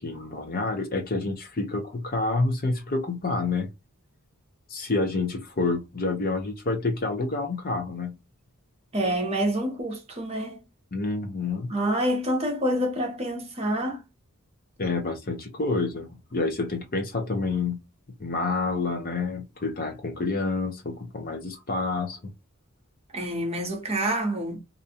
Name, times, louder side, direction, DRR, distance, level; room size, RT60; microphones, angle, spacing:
voice 1, 0.0-3.7 4.7-8.2 10.9-11.7 14.8-17.8 18.2-22.3, left 3 dB, 40° left, 0.7 m, -28 dB
voice 2, 8.9-10.6 11.7-14.0 23.1-24.6, right 1 dB, 30° right, 0.8 m, -27 dB
2.5 x 2.3 x 2.7 m
head